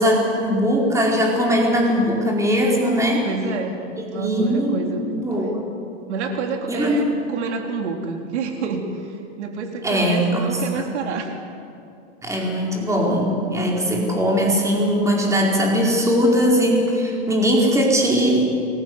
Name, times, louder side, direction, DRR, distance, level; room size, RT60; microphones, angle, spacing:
voice 1, 0.0-3.3 4.1-5.5 6.7-7.0 9.8-10.8 12.2-18.5, equal, 10° right, -1 dB, 4.6 m, -20 dB
voice 2, 3.2-3.8 4.1-5.0 6.1-11.3, right 5 dB, 70° right, 3 dB, 3.8 m, -28 dB
28.5 x 22.0 x 8.0 m, 2.6 s
supercardioid pair, 145°, 35 cm